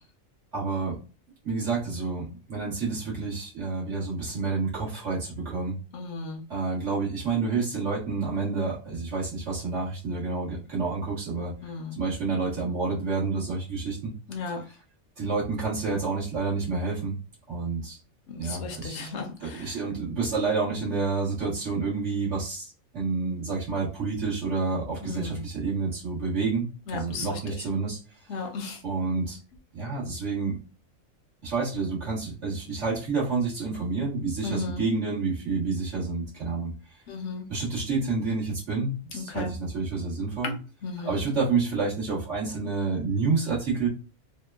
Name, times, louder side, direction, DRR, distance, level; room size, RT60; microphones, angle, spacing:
voice 1, 0.5-1.0 1.5-5.7 6.5-11.5 11.9-14.1 15.2-17.1 17.5-18.0 18.4-19.1 19.4-28.0 28.8-29.4 29.7-30.6 31.4-36.7 37.5-40.5 41.0-43.9, right 4 dB, 60° right, -7 dB, 1.6 m, -29 dB
voice 2, 5.9-6.4 11.6-12.0 14.3-14.6 18.3-19.8 25.0-25.4 26.9-27.6 28.3-28.8 34.4-34.8 37.1-37.4 39.1-39.5 40.4-41.2, left 4 dB, 65° left, 2 dB, 0.9 m, -35 dB
3.6 x 2.1 x 2.3 m, 0.35 s
omnidirectional pair, 1.4 m